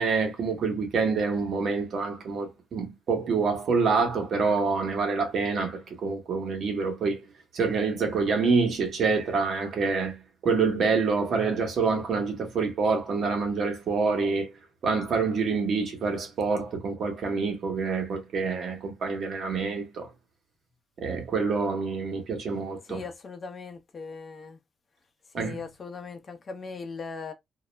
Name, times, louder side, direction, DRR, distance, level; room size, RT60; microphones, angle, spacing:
voice 1, 0.0-7.2 7.5-14.5 14.8-20.1 21.0-23.0 25.3-25.6, right 4 dB, 60° right, 0.9 m, -27 dB
voice 2, 22.9-24.6 25.3-27.3, left 4 dB, 40° left, 0.6 m, -39 dB
2.3 x 2.0 x 3.1 m
cardioid pair, 90°, 0 cm